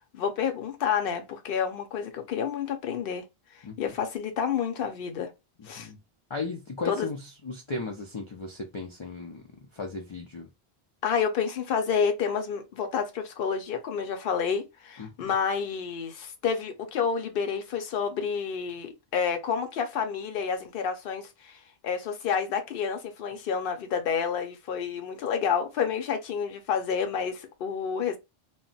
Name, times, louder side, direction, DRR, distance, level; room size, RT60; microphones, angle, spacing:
voice 1, 0.1-3.2 3.5-5.3 5.7-5.9 6.8-7.1 11.0-28.2, left 7 dB, 60° left, 0.8 m, -29 dB
voice 2, 5.6-6.0 6.3-9.5 9.7-10.5 15.0-15.1, left 3 dB, 45° left, 0.4 m, -36 dB
2.3 x 2.0 x 3.8 m
omnidirectional pair, 1.1 m